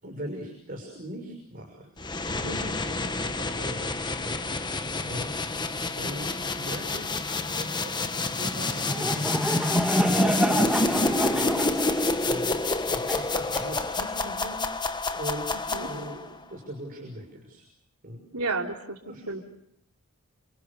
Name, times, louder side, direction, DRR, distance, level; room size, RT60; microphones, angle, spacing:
voice 1, 0.0-1.9 2.7-4.4 5.0-5.3 5.9-11.0 11.3-11.9 12.2-12.6 12.8-14.6 15.1-17.6 18.0-18.2 19.0-19.3, equal, 40° right, 1 dB, 6.3 m, -40 dB
sound 1, 2.0-16.3, left 2 dB, 20° left, 1.3 m, -28 dB
voice 2, 2.4-2.7 15.7-15.9 18.3-19.4, right 3 dB, 80° right, 2 dB, 3.7 m, -32 dB
Laughter / Crowd, 8.5-14.2, right 1 dB, 5° right, 1.4 m, -31 dB
29.5 x 28.0 x 6.8 m, 0.74 s
head